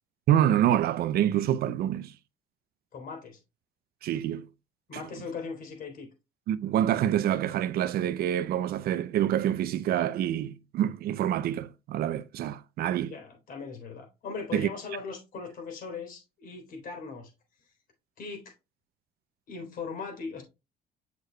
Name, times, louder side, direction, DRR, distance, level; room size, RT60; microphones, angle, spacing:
voice 1, 0.3-2.1 4.0-4.5 6.5-13.1 14.5-14.7, right 11 dB, 65° right, 0.5 m, -26 dB
voice 2, 2.9-3.4 4.9-6.1 13.0-17.3 17.6-17.7 18.2-18.5 19.5-20.4, left 5 dB, 55° left, 3.8 m, -39 dB
8.0 x 6.5 x 2.3 m
cardioid pair, 110°, 17 cm